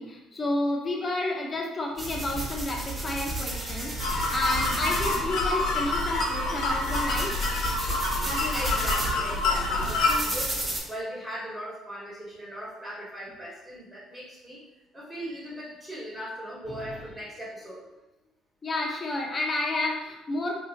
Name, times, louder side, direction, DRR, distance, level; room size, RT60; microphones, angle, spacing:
voice 1, 0.0-7.5 8.2-8.8 16.7-17.0 18.6-20.6, left 1 dB, 35° left, 0 dB, 0.8 m, -31 dB
sound 1, 2.0-10.8, right 1 dB, 35° right, 1.1 m, -34 dB
sound 2, 3.4-11.5, right 2 dB, 85° right, 1.0 m, -46 dB
sound 3, 4.0-10.1, left 3 dB, 75° left, 0.9 m, -27 dB
voice 2, 8.5-14.6 14.9-17.8, equal, 10° right, -7 dB, 1.5 m, -38 dB
3.5 x 2.7 x 2.8 m, 0.96 s
supercardioid pair, 70°, 0 cm